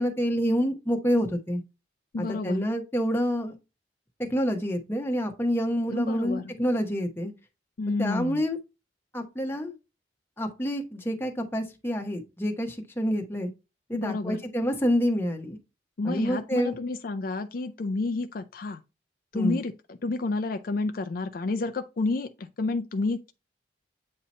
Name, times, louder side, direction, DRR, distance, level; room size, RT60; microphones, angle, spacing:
voice 1, 0.0-1.6 2.2-3.5 4.3-7.3 8.0-8.6 9.1-9.7 10.4-13.5 13.9-15.6 16.0-16.7 19.3-19.6, equal, 15° left, 0.9 m, -27 dB
voice 2, 2.1-2.6 5.9-6.4 7.8-8.4 13.9-14.4 16.0-18.8 19.3-23.3, left 3 dB, 50° left, 0.4 m, -30 dB
8.5 x 2.8 x 4.1 m
head